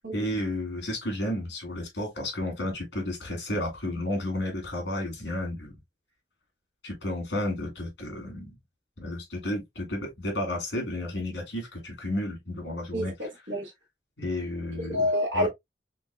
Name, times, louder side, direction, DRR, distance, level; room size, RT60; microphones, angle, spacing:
voice 1, 0.1-5.7 6.8-8.5 9.0-13.3 14.2-15.0 15.3-15.5, left 1 dB, 70° left, 2.2 m, -32 dB
voice 2, 12.9-13.7 14.9-15.5, left 1 dB, 85° right, 1.3 m, -28 dB
4.4 x 3.6 x 2.2 m
head